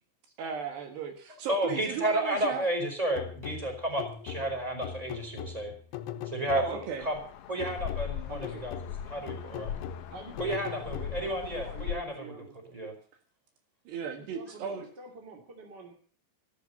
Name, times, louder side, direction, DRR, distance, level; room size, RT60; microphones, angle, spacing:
voice 1, 0.4-2.7 6.5-7.1 13.9-14.8, right 6 dB, 70° right, 6 dB, 3.7 m, -36 dB
voice 2, 1.5-5.7 6.3-6.6 7.0-7.1 7.5-8.8 9.1-9.7 10.4-12.3 12.7-12.9, right 1 dB, 10° right, 3 dB, 4.0 m, -32 dB
sound 1, 3.2-7.0 7.6-11.5, left 8 dB, 90° left, 3.4 m, -41 dB
sound 2, 7.0-12.0, left 11 dB, 70° left, 2.1 m, -39 dB
voice 3, 8.3-8.6 10.1-12.5 14.3-15.9, right 3 dB, 30° right, 2 dB, 2.4 m, -46 dB
14.0 x 12.5 x 6.8 m, 0.43 s
omnidirectional pair, 5.3 m